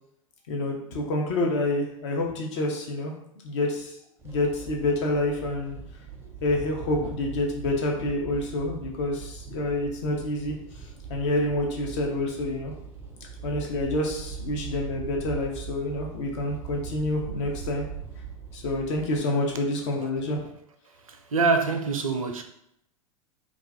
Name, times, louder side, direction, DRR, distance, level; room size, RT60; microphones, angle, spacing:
voice 1, 0.5-3.1 3.4-3.9 4.2-5.8 6.4-10.5 11.1-12.7 13.4-17.8 18.5-20.4, left 2 dB, 55° left, 0.8 m, -28 dB
sound 1, 4.2-19.2, right 6 dB, 15° right, 0.5 m, -40 dB
voice 2, 21.1-22.4, right 4 dB, 75° right, 0.4 m, -25 dB
2.4 x 2.3 x 3.5 m
figure-of-eight pair, 90°, 18 cm